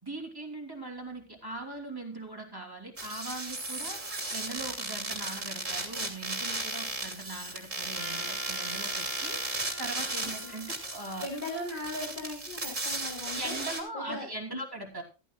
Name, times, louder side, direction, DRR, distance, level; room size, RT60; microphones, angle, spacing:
voice 1, 0.0-4.0 4.3-9.4 9.8-11.3 13.3-15.0, right 2 dB, 20° right, 1 dB, 3.1 m, -40 dB
sound 1, 3.0-13.8, right 2 dB, 40° right, 3.0 m, -35 dB
Trumpet, 7.9-12.2, left 1 dB, 10° left, 2.0 m, -46 dB
voice 2, 11.2-13.6 13.9-14.6, left 2 dB, 40° left, -2 dB, 3.2 m, -38 dB
14.5 x 14.0 x 2.4 m, 0.30 s
omnidirectional pair, 1.2 m